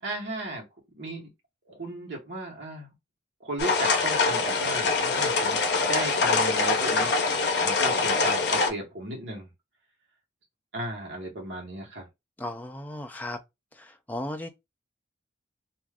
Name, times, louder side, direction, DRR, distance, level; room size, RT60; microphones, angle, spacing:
voice 1, 0.0-0.6 0.9-1.3 1.6-2.9 3.4-5.6 5.9-7.1 7.6-9.5 10.7-12.1, right 1 dB, 65° right, 1.1 m, -35 dB
sound 1, 3.6-8.7, left 4 dB, 55° left, 0.6 m, -24 dB
voice 2, 12.4-13.4 13.8-14.5, left 1 dB, 10° left, 0.3 m, -35 dB
2.4 x 2.4 x 3.4 m
head